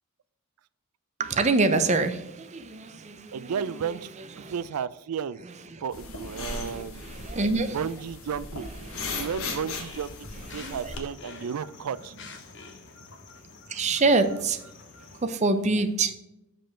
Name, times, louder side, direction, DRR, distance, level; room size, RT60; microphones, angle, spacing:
voice 1, 1.2-4.5 5.7-5.8 6.3-7.8 8.8-9.3 10.5-10.9 13.7-14.6 15.2-16.1, right 3 dB, 30° right, 9 dB, 0.6 m, -27 dB
voice 2, 3.3-4.1 4.4-5.4 5.8-7.0 7.7-8.7 9.1-10.3 10.5-12.1, right 7 dB, 90° right, 18 dB, 0.4 m, -33 dB
sound 1, 5.9-11.0, left 3 dB, 70° left, 1.3 m, -37 dB
sound 2, 8.9-15.2, left 4 dB, 55° left, 1.0 m, -47 dB
7.5 x 5.2 x 4.4 m, 0.88 s
head